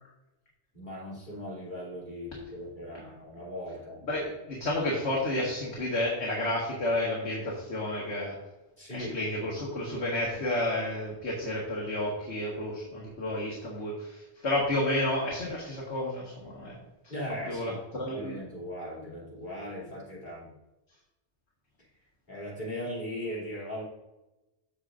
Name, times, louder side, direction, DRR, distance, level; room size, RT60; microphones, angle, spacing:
voice 1, 0.7-4.0 8.8-9.3 17.1-20.5 22.3-23.8, left 1 dB, 45° left, -7 dB, 3.2 m, -38 dB
voice 2, 4.1-8.3 8.9-16.8 17.5-18.4, left 1 dB, 70° left, -4 dB, 1.9 m, -31 dB
14.0 x 4.9 x 2.6 m, 1.0 s
omnidirectional pair, 1.2 m